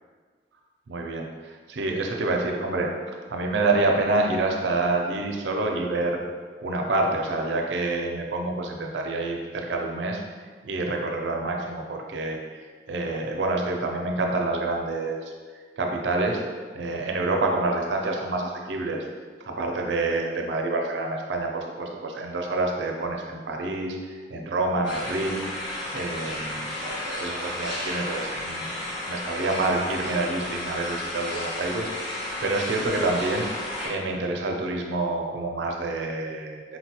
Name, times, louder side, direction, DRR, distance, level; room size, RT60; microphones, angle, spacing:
voice 1, 0.9-6.2 6.6-10.2 10.6-15.3 15.8-16.4 16.7-19.0 19.4-25.4 25.9-28.8 29.0-33.5 33.8-36.8, right 2 dB, 90° right, 1 dB, 0.5 m, -27 dB
sound 1, 24.8-33.9, left 1 dB, 85° left, 1.1 m, -33 dB
4.1 x 2.2 x 2.8 m, 1.5 s
head